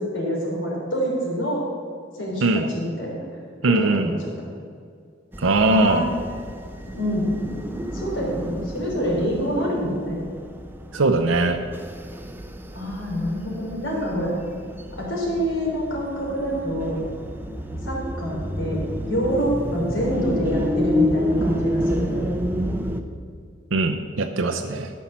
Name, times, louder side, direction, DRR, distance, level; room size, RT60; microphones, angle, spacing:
voice 1, 0.0-1.6 2.2-2.4 2.7-3.2 3.8-4.1 5.7-6.1 6.9-7.3 7.9-10.2 12.7-14.3 15.0-17.0 17.8-22.3, equal, 75° left, -2 dB, 3.4 m, -26 dB
voice 2, 2.4-2.7 3.6-4.1 5.4-6.1 10.9-11.6 23.7-24.9, right 2 dB, 90° right, 6 dB, 0.7 m, -20 dB
sound 1, 5.3-23.0, equal, 10° right, 0.7 m, -30 dB
12.5 x 5.6 x 7.3 m, 2.1 s
head